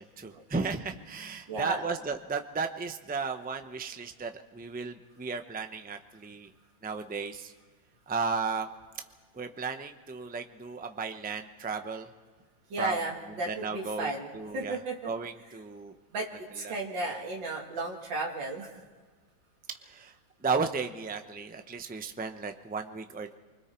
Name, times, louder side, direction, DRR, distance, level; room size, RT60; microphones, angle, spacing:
voice 1, 0.0-6.5 6.8-7.5 8.1-8.7 9.3-12.1 12.8-13.0 13.5-14.8 15.0-16.0 16.6-16.8 19.8-20.2 20.4-23.3, right 4 dB, 15° right, 6 dB, 0.3 m, -34 dB
voice 2, 1.5-1.9 12.7-15.1 16.1-18.8, right 2 dB, 85° right, -2 dB, 2.7 m, -34 dB
28.5 x 25.0 x 4.5 m, 1.4 s
omnidirectional pair, 2.0 m